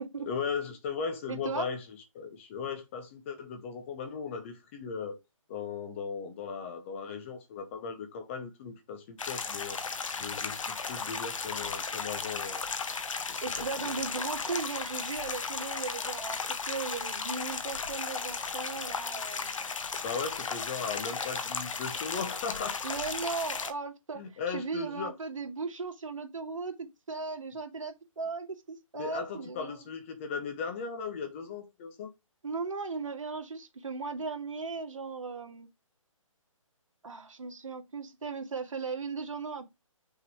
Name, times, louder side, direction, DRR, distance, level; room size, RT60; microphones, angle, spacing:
voice 1, 0.3-5.2 5.5-9.8 10.2-12.6 13.3-14.0 19.9-22.8 24.2-25.2 28.9-32.1, left 5 dB, 20° left, 0.8 m, -37 dB
voice 2, 1.3-1.7 13.4-19.7 22.8-24.2 24.5-29.9 32.4-35.7 37.0-39.7, right 4 dB, 65° right, 2.1 m, -37 dB
sound 1, 9.2-23.7, left 5 dB, 65° left, 1.1 m, -35 dB
6.0 x 3.8 x 4.6 m
hypercardioid pair, 155°, 18 cm